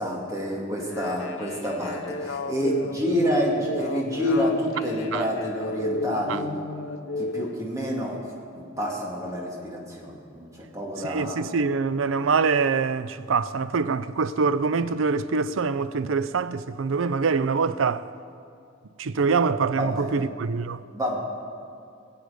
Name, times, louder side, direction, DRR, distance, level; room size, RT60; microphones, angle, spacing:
voice 1, 0.0-6.5 7.2-8.2 8.5-11.5 19.8-20.2 20.9-21.2, equal, 15° right, 2.4 m, -28 dB
sound 1, 0.8-7.5, left 2 dB, 80° left, 0.9 m, -34 dB
voice 2, 11.0-18.1 19.0-20.8, right 5 dB, 85° right, 0.5 m, -24 dB
21.5 x 8.2 x 5.0 m
head